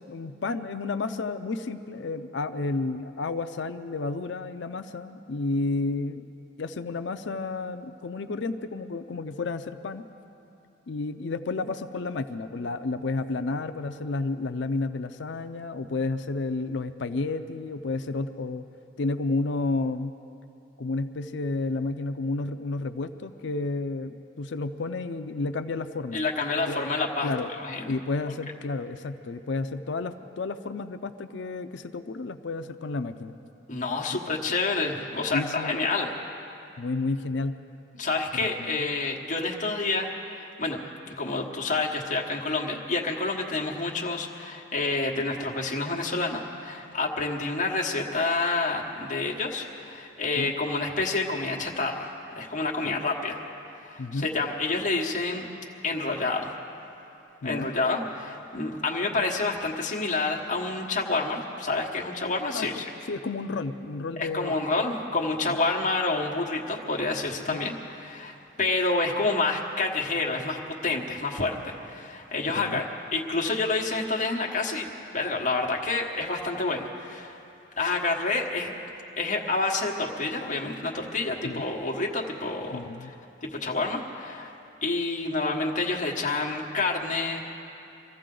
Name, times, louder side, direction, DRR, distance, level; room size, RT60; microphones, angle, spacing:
voice 1, 0.0-6.2 6.6-10.0 10.9-18.7 19.0-20.1 20.8-26.2 26.7-26.8 27.2-27.5 27.9-33.3 35.3-35.8 36.8-37.5 38.4-38.8 50.4-50.5 52.9-53.0 54.0-54.3 57.4-57.7 62.5-62.8 63.1-64.5 65.5-65.6 67.5-67.6 72.6-72.8 81.4-81.6 82.7-83.1, left 3 dB, 60° left, 10 dB, 0.5 m, -31 dB
voice 2, 26.1-27.3 27.6-27.9 33.7-36.1 38.0-40.8 41.1-53.4 53.8-55.5 55.8-56.5 57.4-62.8 64.2-72.8 73.1-74.9 75.1-77.4 77.8-78.7 79.2-83.1 83.4-84.5 84.8-87.5, left 3 dB, 40° left, -1 dB, 1.3 m, -28 dB
24.5 x 14.5 x 3.8 m, 2.8 s
head